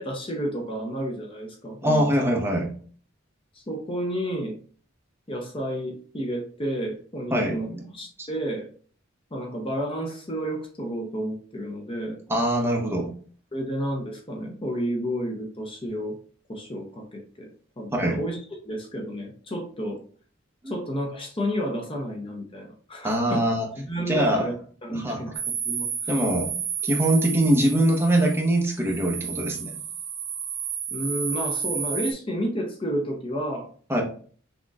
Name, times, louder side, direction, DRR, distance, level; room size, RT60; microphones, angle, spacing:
voice 1, 0.0-2.1 3.5-4.6 5.3-8.7 9.3-12.2 13.5-16.2 16.5-18.4 18.6-20.0 20.7-23.5 23.8-24.5 24.8-25.3 25.6-26.2 30.9-33.7, equal, 25° left, 2 dB, 0.7 m, -31 dB
voice 2, 1.8-2.7 7.3-7.9 8.2-8.3 12.3-13.1 17.9-18.2 20.6-20.7 23.0-23.7 24.1-24.4 24.9-25.2 26.1-26.5 26.8-29.7 33.9-34.0, right 1 dB, 10° right, 0 dB, 0.9 m, -23 dB
sound 1, 25.3-32.1, right 6 dB, 80° right, 1.7 m, -31 dB
6.2 x 2.9 x 2.4 m, 0.43 s
head